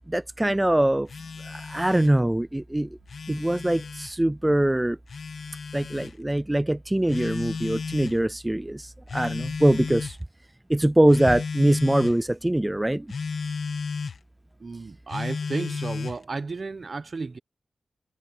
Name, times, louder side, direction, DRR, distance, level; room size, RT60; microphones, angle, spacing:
voice 1, 0.1-1.1 1.4-3.0 3.3-5.0 5.7-10.2 10.7-13.1, right 1 dB, 15° right, 0.5 m, -23 dB
Telephone, 1.1-2.2 2.9-4.1 5.1-6.1 7.1-8.2 9.1-10.2 11.1-12.2 13.1-14.2 15.1-16.2, left 5 dB, 75° left, 1.9 m, -33 dB
voice 2, 14.6-17.4, right 4 dB, 55° right, 0.9 m, -33 dB
cardioid pair, 50°, 0 cm